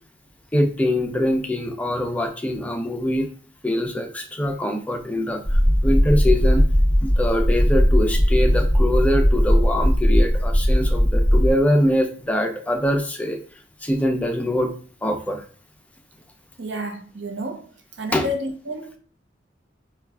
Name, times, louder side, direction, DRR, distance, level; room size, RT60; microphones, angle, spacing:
voice 1, 0.5-3.3 3.6-6.6 7.0-13.4 13.8-14.7 15.0-15.4 18.1-18.3, left 1 dB, 10° left, 0.4 m, -23 dB
sound 1, 5.4-11.5, equal, 30° right, 0.8 m, -18 dB
voice 2, 16.6-17.7 18.0-19.0, equal, 85° right, 0.7 m, -30 dB
5.6 x 2.3 x 2.2 m
head